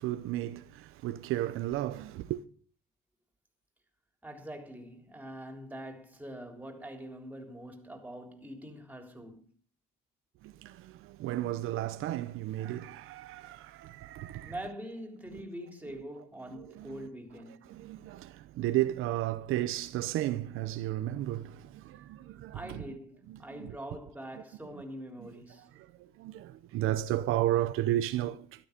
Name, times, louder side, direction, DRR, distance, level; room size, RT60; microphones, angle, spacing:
voice 1, 0.0-2.4 10.4-14.6 15.3-15.4 16.5-17.1 17.7-22.8 23.3-23.8 25.8-28.7, right 14 dB, 75° right, 1.0 m, -33 dB
voice 2, 4.2-9.5 14.4-17.8 22.5-25.8, right 1 dB, 5° right, 3.6 m, -44 dB
13.5 x 12.5 x 5.3 m
cardioid pair, 100°, 21 cm